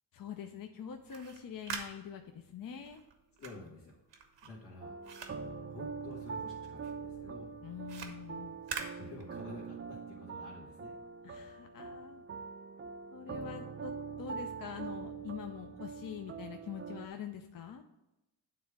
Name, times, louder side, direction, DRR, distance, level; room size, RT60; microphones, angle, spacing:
voice 1, 0.1-3.0 7.6-8.6 11.2-12.2 13.1-13.9 14.2-17.8, left 8 dB, 55° left, 5 dB, 0.6 m, -44 dB
sound 1, 0.9-6.5 6.8-9.7, right 6 dB, 85° right, 1.2 m, -46 dB
voice 2, 3.4-4.0 4.4-5.0 5.7-7.5 8.9-10.9, left 3 dB, 80° left, -5 dB, 1.5 m, -50 dB
sound 2, 4.8-17.1, right 5 dB, 30° right, 0.4 m, -43 dB
9.4 x 3.7 x 4.6 m, 0.93 s
cardioid pair, 95°, 42 cm